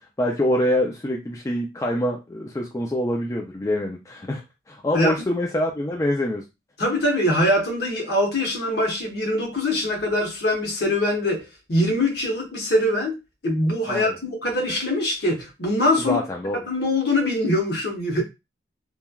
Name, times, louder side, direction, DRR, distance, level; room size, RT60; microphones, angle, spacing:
voice 1, 0.2-6.4 13.9-14.2 16.0-16.6, left 1 dB, 15° left, 0.3 m, -25 dB
voice 2, 6.8-13.1 13.4-16.2 16.7-18.2, left 1 dB, 60° left, 1.1 m, -23 dB
3.2 x 2.2 x 2.2 m
head